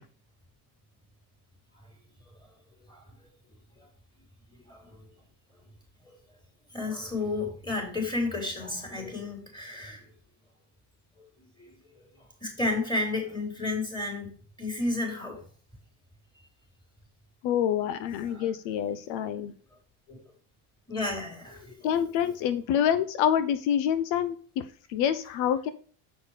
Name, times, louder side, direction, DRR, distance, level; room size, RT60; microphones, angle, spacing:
voice 1, 4.5-5.0 6.7-10.1 11.2-15.4 18.2-18.4 20.1-20.2 20.9-21.8, left 2 dB, 10° left, 1 dB, 4.0 m, -33 dB
voice 2, 17.4-19.5 21.8-24.6 24.9-25.7, left 9 dB, 75° left, 12 dB, 0.9 m, -27 dB
7.2 x 5.8 x 4.9 m, 0.43 s
supercardioid pair, 115°, 46 cm